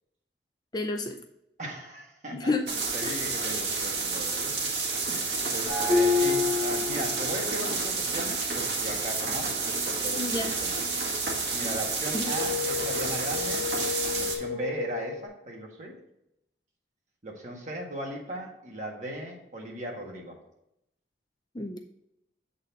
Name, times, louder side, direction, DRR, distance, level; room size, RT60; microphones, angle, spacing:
voice 1, 0.7-1.2 2.3-2.6 3.0-3.3 10.2-10.5 11.6-11.7 12.1-12.3 21.5-21.8, left 2 dB, 25° left, 4 dB, 0.5 m, -30 dB
voice 2, 1.6-4.4 5.1-11.0 11.5-13.7 14.2-15.9 17.2-20.4, right 1 dB, 45° right, -1 dB, 1.7 m, -38 dB
sound 1, 2.7-14.3, right 4 dB, 70° right, 1.8 m, -30 dB
sound 2, 5.7-7.8 12.3-15.3, left 4 dB, ahead, 3.1 m, -29 dB
7.7 x 4.1 x 5.3 m, 0.81 s
head